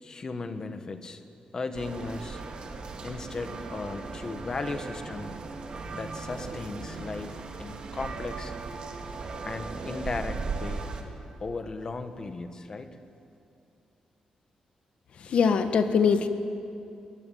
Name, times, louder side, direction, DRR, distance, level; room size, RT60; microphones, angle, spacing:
voice 1, 0.0-1.2 1.5-2.4 3.0-5.4 5.9-8.5 9.4-10.9 11.4-13.0, left 3 dB, 35° left, 8 dB, 1.5 m, -36 dB
sound 1, 1.7-11.0, right 4 dB, 50° right, 2.5 m, -37 dB
voice 2, 15.2-16.3, left 6 dB, 65° left, 8 dB, 1.6 m, -22 dB
22.5 x 19.5 x 9.4 m, 2.6 s
wide cardioid pair, 145°, 2 cm